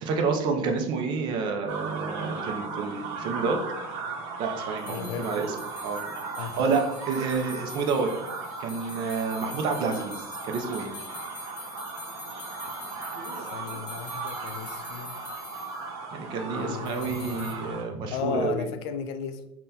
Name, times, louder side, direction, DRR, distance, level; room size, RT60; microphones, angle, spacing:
voice 1, 0.0-3.6 4.4-5.5 5.8-6.0 6.4-8.1 8.6-10.9 16.1-18.7, right 4 dB, 30° right, 4 dB, 0.4 m, -29 dB
sound 1, 1.7-17.8, right 4 dB, 65° right, 0.7 m, -37 dB
sound 2, 4.8-15.9 16.8-17.5, left 3 dB, 45° left, 0.9 m, -45 dB
voice 2, 4.9-5.3 6.4-6.6 13.4-15.2 16.5-17.6 18.1-19.5, left 7 dB, 65° left, 9 dB, 0.4 m, -35 dB
5.3 x 2.2 x 2.7 m, 0.85 s
cardioid pair, 180°, 15 cm